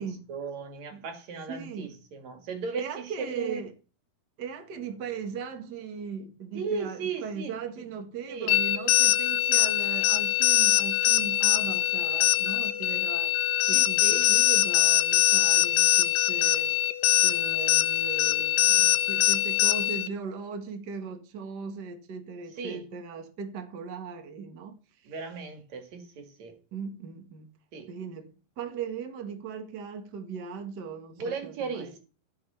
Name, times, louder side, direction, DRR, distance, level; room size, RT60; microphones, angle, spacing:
voice 1, 0.3-2.8 3.2-3.6 6.5-7.5 8.3-8.5 13.7-14.3 22.6-22.8 25.1-26.5 27.7-27.9 31.1-32.0, right 5 dB, 50° right, 2.9 m, -36 dB
voice 2, 1.5-2.0 2.8-3.7 4.4-13.4 13.7-16.8 17.2-25.4 26.7-27.5 27.9-32.0, right 6 dB, 80° right, 0.9 m, -38 dB
sound 1, 8.5-20.1, left 13 dB, 85° left, 2.9 m, -23 dB
14.0 x 6.1 x 5.6 m
omnidirectional pair, 4.7 m